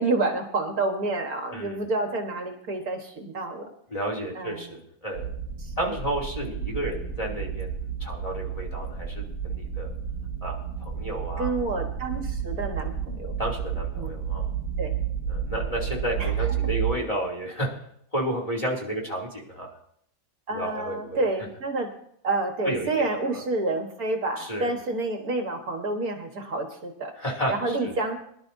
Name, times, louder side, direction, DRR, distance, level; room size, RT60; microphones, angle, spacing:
voice 1, 0.0-3.7 4.4-4.7 5.6-6.0 11.4-13.3 14.0-14.2 14.8-15.0 16.2-16.3 20.5-21.9 22.2-27.1 27.5-28.2, right 2 dB, 65° right, 3 dB, 1.9 m, -29 dB
voice 2, 1.5-1.8 3.9-5.2 5.8-9.9 10.4-11.5 13.4-14.5 15.3-17.7 18.1-19.7 20.5-21.3 22.6-23.4 24.4-24.7 27.2-27.5 27.8-27.9, right 1 dB, 20° left, -2 dB, 2.8 m, -32 dB
sound 1, 5.1-16.9, right 8 dB, 85° left, 7.0 m, -31 dB
22.0 x 11.5 x 2.7 m, 0.69 s
omnidirectional pair, 1.7 m